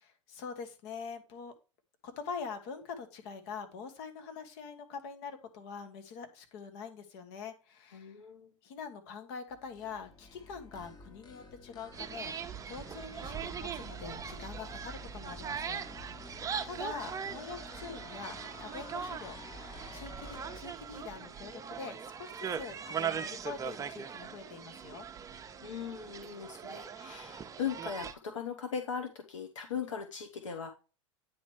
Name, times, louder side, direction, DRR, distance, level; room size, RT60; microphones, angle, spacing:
voice 1, 0.3-1.5 2.0-8.2 8.6-15.8 16.6-19.4 19.6-25.1, left 5 dB, 55° left, 7 dB, 1.4 m, -44 dB
voice 2, 7.9-8.5 25.6-30.7, left 7 dB, 80° left, 5 dB, 0.9 m, -39 dB
sound 1, 9.5-20.6, left 2 dB, 25° left, 1.1 m, -50 dB
sound 2, 11.9-28.1, right 7 dB, 20° right, 0.7 m, -40 dB
9.2 x 3.1 x 4.5 m, 0.32 s
hypercardioid pair, 95°, 16 cm